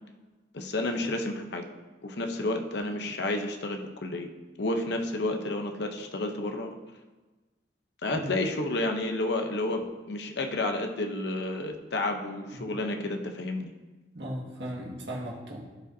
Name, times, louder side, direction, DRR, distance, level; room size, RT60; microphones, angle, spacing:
voice 1, 0.5-1.7 2.0-4.3 4.6-6.8 8.0-13.7, left 2 dB, 65° left, 4 dB, 0.8 m, -31 dB
voice 2, 14.1-15.6, equal, 70° right, -3 dB, 1.8 m, -37 dB
15.5 x 5.2 x 2.7 m, 1.2 s
head